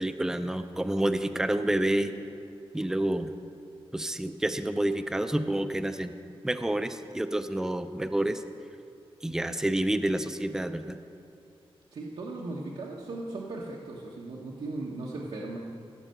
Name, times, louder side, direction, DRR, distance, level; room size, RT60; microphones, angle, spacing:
voice 1, 0.0-2.1 2.7-3.3 3.9-6.1 6.4-8.4 9.2-11.0, right 1 dB, 5° right, 9 dB, 0.4 m, -28 dB
voice 2, 11.9-15.6, right 2 dB, 85° right, -4 dB, 1.2 m, -37 dB
16.0 x 5.5 x 7.7 m, 2.5 s
wide cardioid pair, 160°, 10 cm